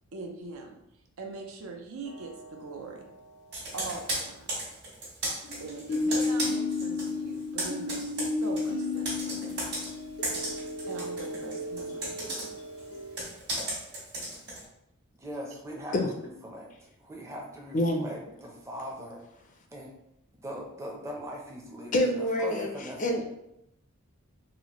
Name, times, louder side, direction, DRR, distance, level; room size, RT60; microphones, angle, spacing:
voice 1, 0.1-0.8 1.2-3.0 3.7-4.6 5.6-9.6 10.9-12.1, right 3 dB, 75° right, 2 dB, 0.6 m, -42 dB
sound 1, 2.1-2.9 5.4-13.2, left 3 dB, 85° left, 0.6 m, -33 dB
Computer keyboard, 3.5-7.1 7.4-14.6, right 1 dB, 50° right, 1.5 m, -35 dB
voice 2, 15.2-15.9 16.2-19.2 19.7-19.9 20.4-23.2, equal, 15° right, -1 dB, 0.5 m, -40 dB
voice 3, 17.7-18.1 21.9-22.7 23.0-23.2, left 1 dB, 35° left, 3 dB, 0.4 m, -26 dB
4.1 x 2.1 x 2.9 m, 0.82 s
head